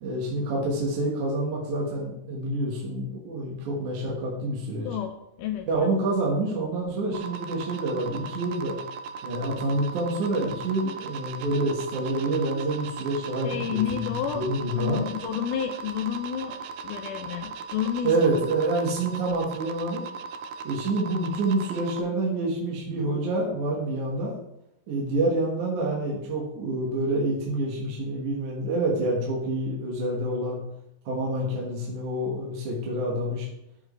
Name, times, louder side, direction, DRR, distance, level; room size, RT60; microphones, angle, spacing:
voice 1, 0.0-4.9 5.7-8.8 9.2-15.0 18.0-20.0 20.6-24.3 24.9-30.6 31.1-33.5, right 2 dB, 60° right, -3 dB, 2.7 m, -27 dB
voice 2, 5.4-5.9 13.4-14.4 14.7-16.6 16.8-18.2, left 9 dB, 80° left, 6 dB, 1.9 m, -30 dB
sound 1, 7.1-22.0, right 5 dB, 85° right, 1.7 m, -38 dB
13.0 x 4.9 x 3.2 m, 0.81 s
omnidirectional pair, 4.1 m